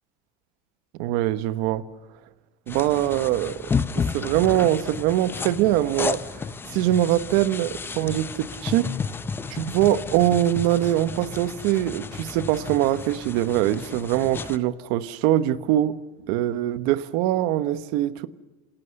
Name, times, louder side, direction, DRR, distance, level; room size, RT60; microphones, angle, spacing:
voice 1, 1.0-1.8 2.7-3.6 3.9-8.9 9.5-16.0 16.3-18.3, right 13 dB, 65° right, 1.2 m, -23 dB
sound 1, 2.7-14.6, left 5 dB, 10° left, 0.6 m, -32 dB
28.5 x 18.0 x 6.6 m
cardioid pair, 175°, 17 cm